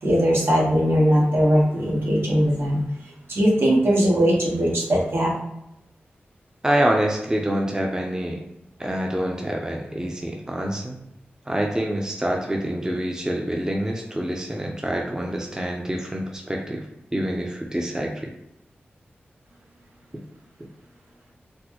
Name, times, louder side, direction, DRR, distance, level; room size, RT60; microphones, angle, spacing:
voice 1, 0.0-2.8 3.3-5.3, equal, 70° right, -3 dB, 1.2 m, -20 dB
voice 2, 6.6-8.4 8.8-11.0 11.5-16.8 17.1-18.3, right 1 dB, 15° right, 1 dB, 0.6 m, -26 dB
4.2 x 2.0 x 2.9 m, 0.84 s
cardioid pair, 55°, 4 cm